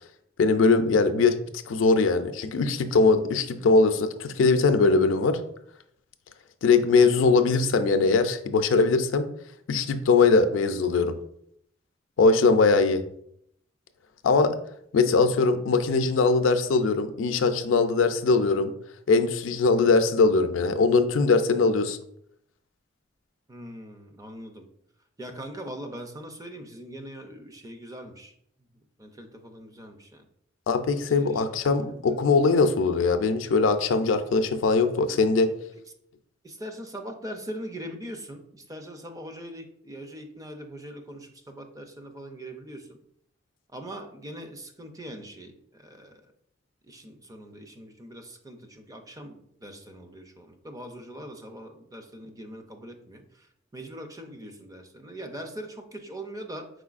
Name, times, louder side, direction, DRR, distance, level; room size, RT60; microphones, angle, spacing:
voice 1, 0.4-1.4 1.7-5.4 6.6-9.3 9.7-11.2 12.2-13.0 14.2-14.6 14.9-18.7 19.1-22.0 30.7-35.5, left 4 dB, 80° left, 9 dB, 0.4 m, -21 dB
voice 2, 23.5-24.7 25.2-28.3 29.0-30.2 31.2-31.4 31.7-32.0 36.4-43.0 43.7-46.2 46.9-53.5 53.7-56.7, right 1 dB, 20° right, 5 dB, 0.4 m, -41 dB
4.9 x 3.9 x 2.4 m, 0.71 s
head